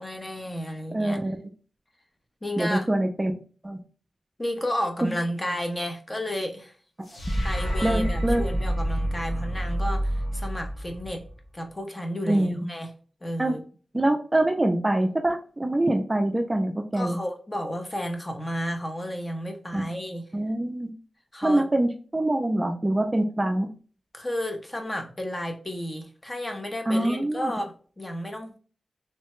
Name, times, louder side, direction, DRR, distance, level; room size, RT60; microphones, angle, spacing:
voice 1, 0.0-1.2 2.4-2.9 4.4-6.7 7.4-11.2 11.5-12.9 13.2-13.6 16.9-20.2 21.3-21.6 24.1-28.6, equal, 20° left, 0.6 m, -32 dB
voice 2, 0.9-1.5 2.6-3.3 3.6-3.8 5.0-5.1 7.8-8.4 12.3-12.7 13.4-13.5 13.9-17.2 19.7-19.9 20.3-20.9 21.4-23.7 26.9-27.5, right 1 dB, 20° right, 0.3 m, -24 dB
sound 1, 7.1-11.4, equal, 60° left, 0.9 m, -28 dB
3.1 x 2.1 x 2.9 m
wide cardioid pair, 115°, 0 cm